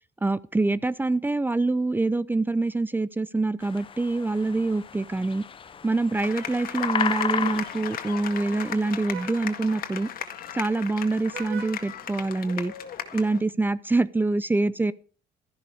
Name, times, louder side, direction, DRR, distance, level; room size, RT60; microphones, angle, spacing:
voice 1, 0.2-5.4 5.8-10.1 10.5-12.7 13.1-14.9, right 2 dB, 10° right, 0.6 m, -25 dB
sound 1, 3.6-8.9, left 6 dB, 30° left, 0.7 m, -33 dB
Vehicle horn car horn honking, 4.8-12.9, right 10 dB, 80° right, 1.2 m, -49 dB
sound 2, 6.1-13.4, left 9 dB, 60° left, 1.9 m, -37 dB
13.5 x 11.5 x 5.0 m
cardioid pair, 110°, 17 cm